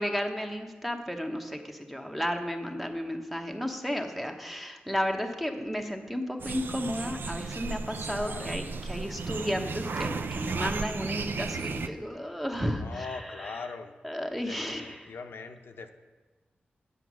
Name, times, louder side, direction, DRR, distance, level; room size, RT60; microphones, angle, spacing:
voice 1, 0.0-13.7 14.0-15.1, equal, 5° right, 4 dB, 0.9 m, -33 dB
sound 1, 6.4-11.9, right 4 dB, 70° right, 0.5 m, -34 dB
voice 2, 8.1-8.6 12.8-13.9 14.5-15.9, left 4 dB, 80° left, 6 dB, 0.6 m, -41 dB
8.0 x 7.9 x 6.1 m, 1.3 s
wide cardioid pair, 95°, 4 cm